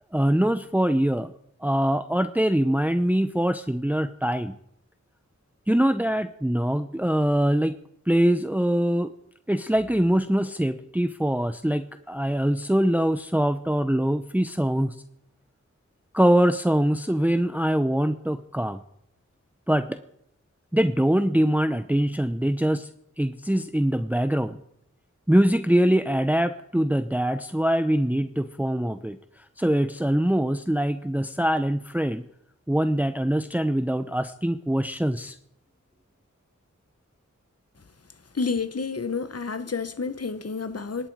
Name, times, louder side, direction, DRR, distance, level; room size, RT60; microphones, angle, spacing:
voice 1, 0.1-1.3 1.6-4.6 5.7-7.8 8.1-9.1 9.5-15.0 16.1-18.8 19.7-20.0 20.7-22.9 23.2-24.6 25.3-29.2 29.6-32.2 32.7-35.4, right 1 dB, 5° right, 0.8 m, -23 dB
voice 2, 38.3-41.1, left 4 dB, 55° left, 1.0 m, -29 dB
25.5 x 12.0 x 4.7 m
wide cardioid pair, 45°, 30 cm